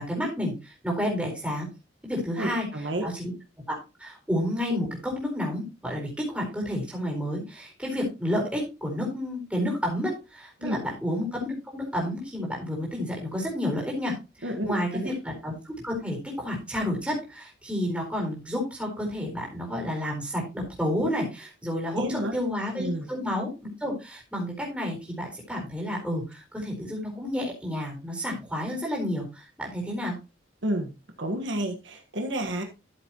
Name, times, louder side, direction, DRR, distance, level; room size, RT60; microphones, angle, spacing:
voice 1, 0.0-1.7 2.0-2.7 3.0-3.3 3.7-23.5 23.8-30.1, left 1 dB, 5° right, -2 dB, 4.4 m, -30 dB
voice 2, 2.4-3.1 10.6-10.8 14.4-15.1 21.9-22.3 22.8-23.1 30.6-30.9 31.2-32.6, right 1 dB, 75° right, 4 dB, 1.5 m, -30 dB
13.5 x 7.5 x 3.0 m, 0.27 s
head